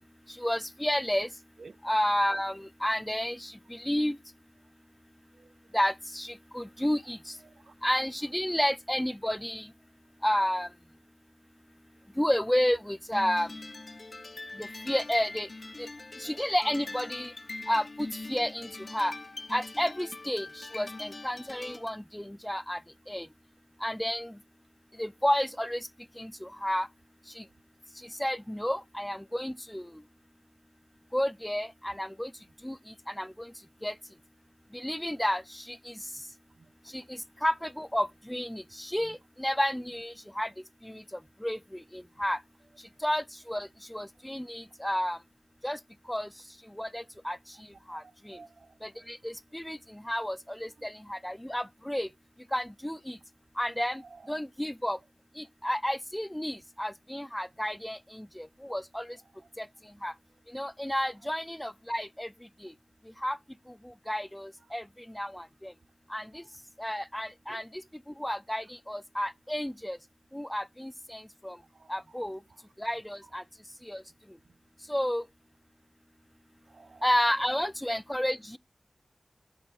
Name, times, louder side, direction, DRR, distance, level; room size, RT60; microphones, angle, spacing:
voice 1, 0.4-1.3 1.8-4.2 5.7-7.2 7.8-9.7 10.2-10.7 12.2-13.5 14.6-15.5 15.8-15.9 16.2-17.3 17.7-19.1 19.5-22.8 23.1-23.3 23.8-24.3 25.0-25.9 26.2-26.9 27.4-27.5 28.2-29.9 31.1-32.3 32.6-32.8 33.1-33.5 33.8-33.9 34.7-35.9 36.9-37.0 37.4-40.5 40.8-41.0 41.4-41.6 41.9-42.4 43.0-45.2 45.6-45.8 46.1-46.3 46.8-47.4 47.9-48.4 48.8-52.1 52.5-53.2 53.6-54.0 54.3-55.0 55.4-59.1 59.6-59.7 60.0-60.1 60.5-62.3 63.2-63.4 64.1-64.8 65.1-65.7 66.1-66.3 66.8-67.6 68.2-70.0 70.3-71.6 71.9-72.4 72.8-73.4 73.9-74.0 74.9-75.2 77.0-78.6, equal, 10° left, 0.4 m, -31 dB
voice 2, 7.4-7.9 36.6-36.7 39.0-39.2 47.9-49.1 50.8-50.9 54.0-54.4 59.4-59.5 66.4-66.5 67.5-67.6 71.6-72.6 73.2-73.3 74.4-74.5 76.7-77.1, right 4 dB, 75° right, 0.5 m, -54 dB
sound 1, 13.1-22.0, left 2 dB, 45° left, 1.0 m, -43 dB
7.7 x 5.4 x 4.2 m
wide cardioid pair, 85°, 0 cm